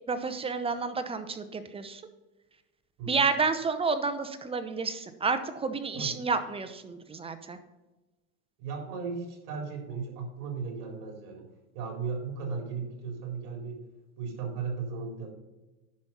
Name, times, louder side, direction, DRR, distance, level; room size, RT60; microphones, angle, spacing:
voice 1, 0.1-2.0 3.1-7.6, right 4 dB, 15° right, 9 dB, 0.7 m, -30 dB
voice 2, 8.6-11.5 11.7-13.8 14.2-15.3, right 5 dB, 55° right, 2 dB, 4.0 m, -36 dB
10.5 x 6.1 x 5.5 m, 1.1 s
supercardioid pair, 125°, 45 cm